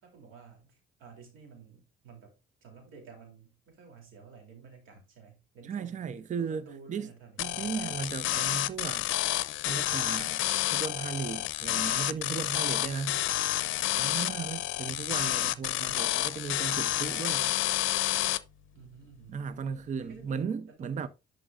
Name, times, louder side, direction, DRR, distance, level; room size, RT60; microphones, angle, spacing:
voice 1, 0.0-2.4 2.6-6.1 6.4-7.7 13.1-15.7 18.7-19.5 20.0-20.5 20.8-21.1, right 5 dB, 90° right, 3.0 m, -53 dB
voice 2, 5.7-7.1 7.4-9.1 9.7-13.2 14.0-17.5 19.3-21.1, right 6 dB, 40° right, 0.5 m, -36 dB
sound 1, 7.4-18.4, left 15 dB, 80° left, 0.5 m, -30 dB
11.0 x 5.1 x 2.4 m
cardioid pair, 90°, 20 cm